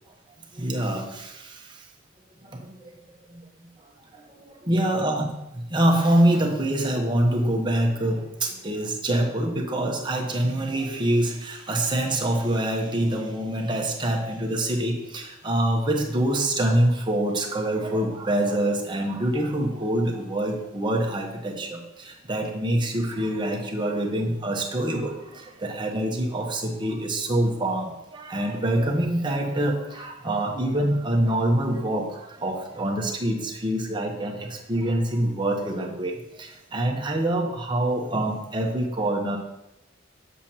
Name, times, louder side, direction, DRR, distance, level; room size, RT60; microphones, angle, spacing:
voice 1, 0.5-1.9 2.4-3.0 3.3-3.7 4.1-5.3 5.5-39.4, right 1 dB, 25° right, 0 dB, 1.0 m, -25 dB
7.3 x 7.1 x 2.9 m, 0.91 s
head